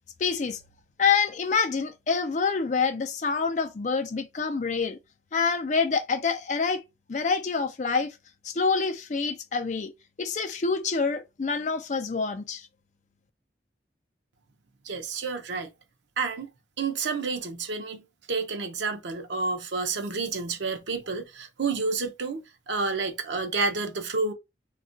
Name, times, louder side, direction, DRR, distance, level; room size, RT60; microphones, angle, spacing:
voice 1, 0.2-0.6 1.0-5.0 5.3-6.8 7.1-8.1 8.4-9.9 10.2-12.7, left 5 dB, 40° left, 0.4 m, -26 dB
voice 2, 14.8-15.7 16.2-16.5 16.8-24.3, right 4 dB, 90° right, 0.6 m, -30 dB
2.3 x 2.2 x 3.7 m
head